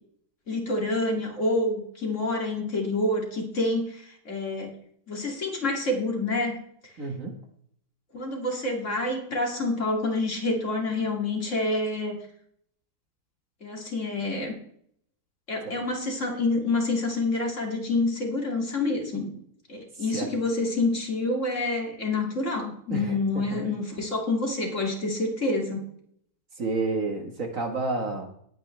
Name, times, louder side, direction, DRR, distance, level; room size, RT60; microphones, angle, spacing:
voice 1, 0.5-4.7 5.1-6.9 8.1-12.2 13.6-14.6 15.5-19.3 19.7-25.8, left 2 dB, 45° left, 1 dB, 2.8 m, -27 dB
voice 2, 7.0-7.4 15.7-15.8 20.0-20.3 22.9-23.6 26.6-28.3, right 3 dB, 50° right, 4 dB, 1.8 m, -30 dB
19.0 x 9.3 x 3.3 m, 0.68 s
omnidirectional pair, 1.8 m